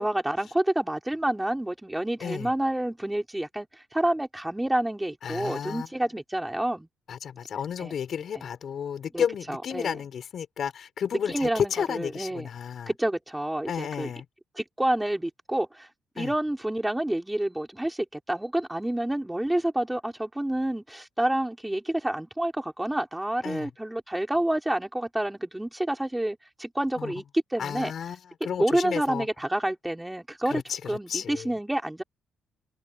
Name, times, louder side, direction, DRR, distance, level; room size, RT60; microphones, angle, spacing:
voice 1, 0.0-3.7 3.9-6.9 7.8-7.9 9.1-10.0 11.1-12.5 12.9-14.1 14.6-15.9 16.1-27.9 28.6-32.0, right 1 dB, 10° right, 5.0 m, -28 dB
voice 2, 2.2-2.5 5.2-5.9 7.1-12.9 13.7-14.3 16.2-16.3 23.4-23.7 27.0-27.1 27.6-29.3 30.5-31.5, left 8 dB, 60° left, 5.6 m, -32 dB
cardioid pair, 90°, 0 cm